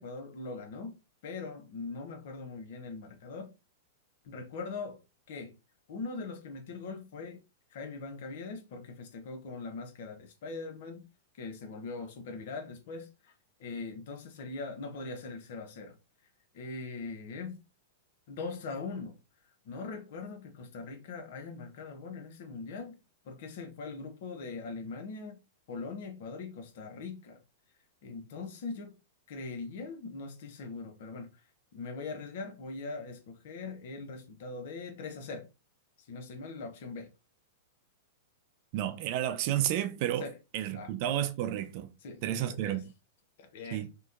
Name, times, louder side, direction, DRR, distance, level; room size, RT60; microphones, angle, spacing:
voice 1, 0.0-3.5 4.2-5.0 5.3-5.5 5.9-7.4 7.7-11.0 11.4-13.3 13.6-15.9 16.5-17.6 18.3-19.2 19.7-23.0 23.2-25.4 25.7-27.4 28.0-29.0 29.3-31.3 31.7-35.5 36.1-37.1 40.2-40.3 40.7-40.9 42.0-42.8 43.4-43.8, left 4 dB, 65° left, 0.7 m, -41 dB
voice 2, 38.7-40.3 40.5-41.9 42.2-42.8 43.7-43.9, right 12 dB, 50° right, 0.4 m, -31 dB
2.8 x 2.2 x 2.4 m
hypercardioid pair, 115°, 0 cm